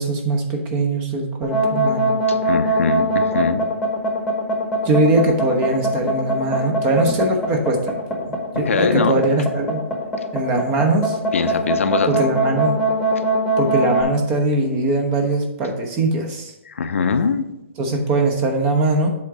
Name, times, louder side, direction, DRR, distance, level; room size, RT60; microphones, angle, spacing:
voice 1, 0.0-2.2 4.8-8.3 8.6-9.8 10.3-11.2 12.1-12.8 13.6-16.5 17.8-19.1, right 2 dB, 25° right, 3 dB, 1.0 m, -21 dB
sound 1, 1.4-14.0, right 1 dB, 5° left, 1.2 m, -21 dB
voice 2, 2.5-3.6 8.5-9.3 11.3-12.1 16.7-17.4, left 5 dB, 75° left, 8 dB, 0.6 m, -21 dB
7.7 x 3.8 x 4.9 m, 0.90 s
hypercardioid pair, 145°, 7 cm